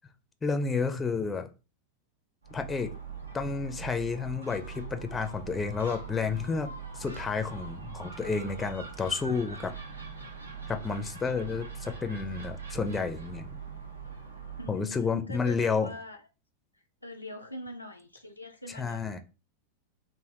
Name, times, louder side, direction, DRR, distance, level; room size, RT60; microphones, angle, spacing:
voice 1, 0.4-1.5 2.5-2.9 3.3-9.7 10.7-13.6 14.7-15.9 18.8-19.2, left 5 dB, 15° left, 0.5 m, -31 dB
Gull seagull, 2.4-14.8, right 6 dB, 75° right, 0.7 m, -42 dB
voice 2, 14.6-16.2 16.7-19.2, left 1 dB, 85° left, 0.4 m, -43 dB
3.3 x 2.5 x 3.6 m
figure-of-eight pair, 90°, 0 cm